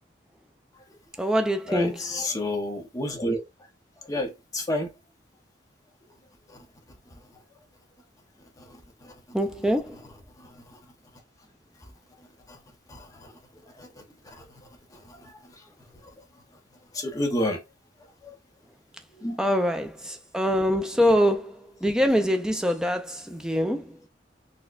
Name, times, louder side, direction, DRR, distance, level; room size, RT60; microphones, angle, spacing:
voice 1, 1.2-2.0 9.3-10.0 19.4-23.9, equal, 5° right, 0.4 m, -24 dB
voice 2, 1.7-3.4 4.0-4.9 6.5-6.7 8.6-8.8 9.0-9.1 10.4-10.8 12.5-12.6 12.9-13.4 13.8-14.5 14.9-15.6 16.0-16.1 16.9-17.6 18.2-18.3 19.1-19.4, left 1 dB, 20° left, 0.7 m, -31 dB
4.2 x 2.2 x 2.4 m
head